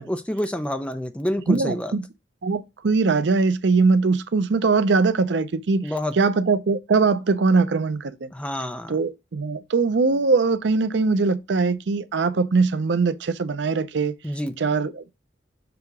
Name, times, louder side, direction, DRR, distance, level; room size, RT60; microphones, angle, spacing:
voice 1, 0.0-1.9 5.8-6.2 8.3-9.0 14.2-14.6, left 1 dB, 5° left, 0.5 m, -28 dB
voice 2, 1.5-2.1 2.4-8.3 8.9-14.1 14.6-15.1, right 4 dB, 75° right, 0.5 m, -21 dB
6.9 x 2.9 x 4.7 m
head